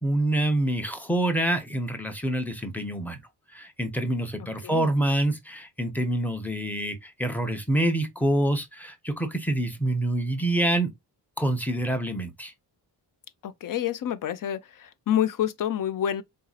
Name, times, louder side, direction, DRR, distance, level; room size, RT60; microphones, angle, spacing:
voice 1, 0.0-3.2 3.5-10.9 11.4-12.5, right 1 dB, 5° left, 0.7 m, -26 dB
voice 2, 13.4-16.2, left 10 dB, 50° left, 0.5 m, -28 dB
4.0 x 2.7 x 2.3 m
wide cardioid pair, 145°, 41 cm